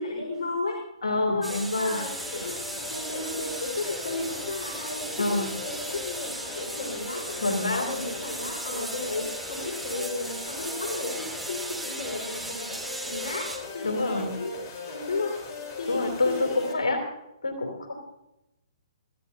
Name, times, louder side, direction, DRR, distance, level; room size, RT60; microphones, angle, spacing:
voice 1, 0.0-0.8 1.3-15.4 15.8-16.8, left 3 dB, 70° left, -2 dB, 5.0 m, -34 dB
voice 2, 1.0-2.0 5.2-5.5 7.4-7.9 13.8-14.3 15.9-17.0 17.4-18.0, left 2 dB, 90° left, 2 dB, 3.3 m, -27 dB
sound 1, 1.4-13.6, right 2 dB, 5° right, 2.8 m, -37 dB
sound 2, 2.0-16.7, left 3 dB, 40° left, 4.0 m, -39 dB
24.0 x 15.5 x 2.8 m, 0.91 s
hypercardioid pair, 135°, 3 cm